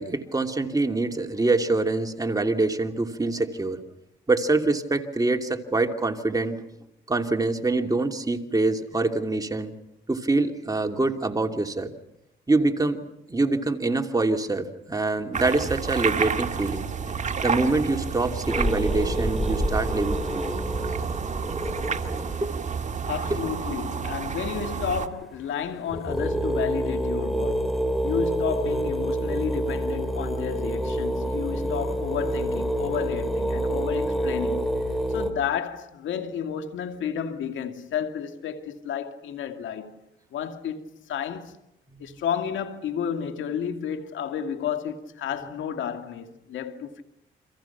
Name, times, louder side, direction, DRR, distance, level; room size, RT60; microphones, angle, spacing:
voice 1, 0.0-3.8 4.3-6.6 7.1-9.7 10.1-11.9 12.5-13.0 13.3-16.9 17.4-20.6 22.4-22.5, right 2 dB, 20° right, 2.8 m, -25 dB
sound 1, 15.3-25.1, right 6 dB, 35° right, 1.9 m, -30 dB
sound 2, 18.5-22.4 25.1-25.2 25.6-25.7 25.9-35.3, right 1 dB, ahead, 3.8 m, -27 dB
voice 2, 23.1-27.8 28.0-34.8 35.1-39.9 40.3-41.6 42.0-47.0, left 8 dB, 75° left, 2.3 m, -31 dB
sound 3, 31.4-35.2, left 5 dB, 50° left, 6.9 m, -48 dB
30.0 x 26.0 x 5.9 m
cardioid pair, 90°, 20 cm